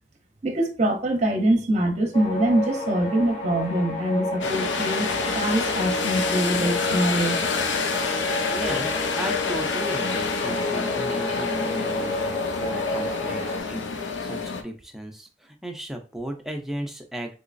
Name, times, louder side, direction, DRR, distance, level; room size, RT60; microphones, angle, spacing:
voice 1, 0.4-5.1 5.3-7.4, right 1 dB, 40° right, 0.7 m, -24 dB
sound 1, 2.1-13.6, left 1 dB, 35° left, 0.8 m, -30 dB
sound 2, 4.4-14.6, left 5 dB, 85° left, 0.6 m, -28 dB
voice 2, 8.4-17.4, right 1 dB, ahead, 0.5 m, -35 dB
3.8 x 3.0 x 2.5 m
head